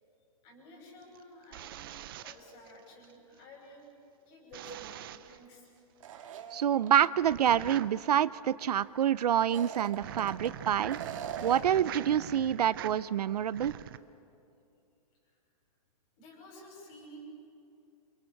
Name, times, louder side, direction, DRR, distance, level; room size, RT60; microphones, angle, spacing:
voice 1, 0.4-1.8 2.2-3.8 4.3-5.7 6.5-6.8 15.2-15.4 16.2-17.2, equal, 25° left, 0 dB, 6.0 m, -52 dB
sound 1, 1.0-3.1 4.5-5.4 7.2-14.0, right 12 dB, 35° right, 0.6 m, -45 dB
sound 2, 6.0-7.1 7.5-7.6 9.4-10.5 10.9-11.8, right 8 dB, 55° right, 2.2 m, -41 dB
voice 2, 6.5-11.0 11.4-13.7, right 10 dB, 75° right, 18 dB, 0.6 m, -27 dB
28.5 x 28.5 x 4.7 m, 2.7 s
hypercardioid pair, 165°, 20 cm